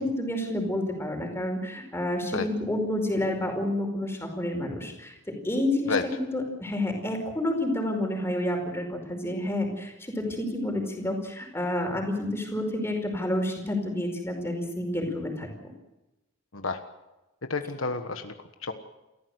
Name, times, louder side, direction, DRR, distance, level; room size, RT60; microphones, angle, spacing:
voice 1, 0.0-15.7, left 1 dB, 10° left, 3 dB, 4.9 m, -29 dB
voice 2, 17.4-18.7, left 3 dB, 70° left, 7 dB, 1.4 m, -30 dB
29.0 x 14.0 x 8.0 m, 1.0 s
head